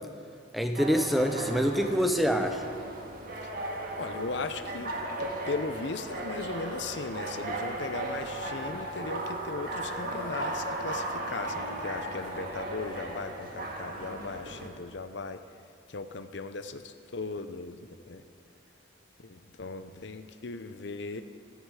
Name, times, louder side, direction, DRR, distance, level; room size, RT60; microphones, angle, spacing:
voice 1, 0.5-2.6, equal, ahead, 6 dB, 0.7 m, -26 dB
sound 1, 0.7-14.7, right 1 dB, 45° right, 1.9 m, -36 dB
voice 2, 4.0-4.9 5.2-15.4 15.9-17.8 18.1-18.2 19.2-21.2, left 3 dB, 65° left, 10 dB, 0.7 m, -37 dB
25.0 x 9.7 x 4.9 m, 2.5 s
head